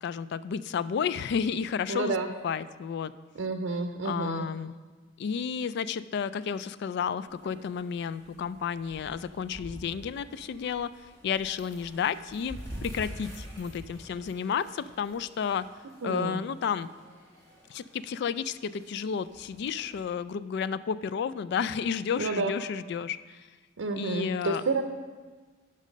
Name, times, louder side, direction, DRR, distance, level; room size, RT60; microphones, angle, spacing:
voice 1, 0.0-2.1 2.4-3.1 4.0-4.7 5.2-10.9 11.2-15.7 16.0-16.9 17.7-23.4 24.0-24.6, left 7 dB, 60° left, 15 dB, 0.3 m, -32 dB
voice 2, 1.9-2.3 3.4-4.5 16.0-16.4 22.2-22.5 23.8-24.8, right 3 dB, 80° right, 6 dB, 0.5 m, -30 dB
sound 1, 7.3-20.0, equal, 20° left, 1.9 m, -48 dB
9.0 x 5.4 x 5.1 m, 1.4 s
head